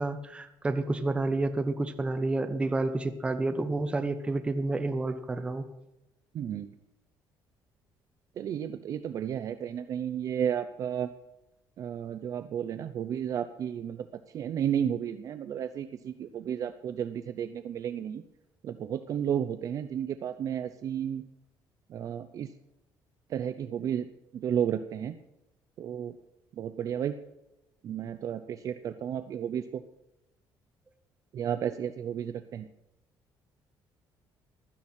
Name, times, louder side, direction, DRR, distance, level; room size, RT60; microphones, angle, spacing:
voice 1, 0.0-5.7, right 2 dB, 15° right, 7 dB, 1.0 m, -29 dB
voice 2, 6.3-6.7 8.4-11.1 11.8-14.1 14.3-18.2 18.6-21.2 21.9-22.5 23.3-24.1 24.3-25.1 25.8-26.2 26.6-27.1 27.8-29.8 31.3-32.7, right 9 dB, 45° right, 10 dB, 0.6 m, -32 dB
16.0 x 12.0 x 4.3 m, 0.93 s
cardioid pair, 175°, 8 cm